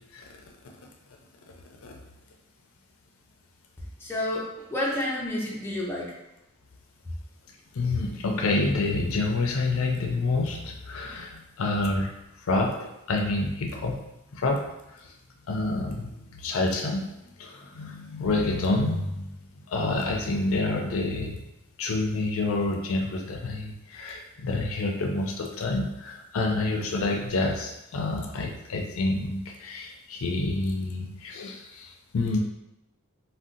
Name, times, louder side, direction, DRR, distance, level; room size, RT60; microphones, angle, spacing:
voice 1, 4.0-6.1, left 1 dB, 10° left, -4 dB, 0.5 m, -30 dB
voice 2, 7.7-12.1 12.4-14.0 14.3-14.7 14.9-15.1 15.5-17.1 17.4-19.4 19.7-21.4 21.8-32.4, left 2 dB, 70° left, 2 dB, 0.4 m, -28 dB
2.6 x 2.1 x 3.6 m, 0.90 s
head